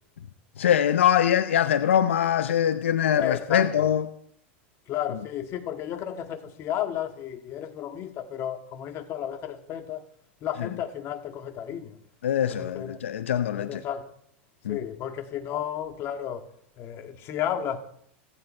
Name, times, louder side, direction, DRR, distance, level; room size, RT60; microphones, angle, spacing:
voice 1, 0.6-4.1 10.6-10.7 12.2-13.8 14.6-14.8, left 9 dB, 85° left, 0.7 m, -23 dB
voice 2, 3.1-3.9 4.9-10.0 10.4-12.0 12.5-13.0 13.5-14.1 14.7-16.5 16.8-17.8, left 10 dB, 45° left, 1.9 m, -33 dB
30.0 x 10.0 x 4.4 m
hypercardioid pair, 110°, 6 cm